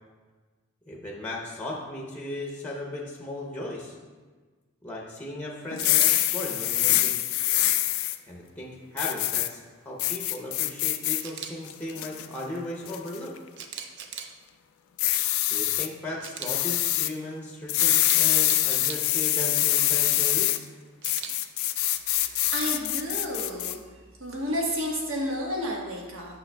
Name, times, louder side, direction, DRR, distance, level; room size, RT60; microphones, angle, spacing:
voice 1, 0.9-4.0 4.8-7.3 8.3-13.3 15.5-20.5, left 1 dB, 10° left, -2 dB, 0.6 m, -36 dB
sound 1, 5.7-8.2 9.0-9.5 10.0-11.2 11.7-12.3 12.9-13.2 15.0-15.9 16.5-17.1 17.7-20.6 21.0-23.7, left 15 dB, 85° left, 0.3 m, -24 dB
Camera, 5.8-6.1 11.2-11.5 13.6-14.3 16.2-16.5 17.9-19.0 21.0-21.3, right 7 dB, 60° right, 0.5 m, -38 dB
voice 2, 22.1-23.8 24.2-26.4, equal, 85° right, -2 dB, 1.3 m, -31 dB
8.6 x 5.7 x 2.2 m, 1.4 s
head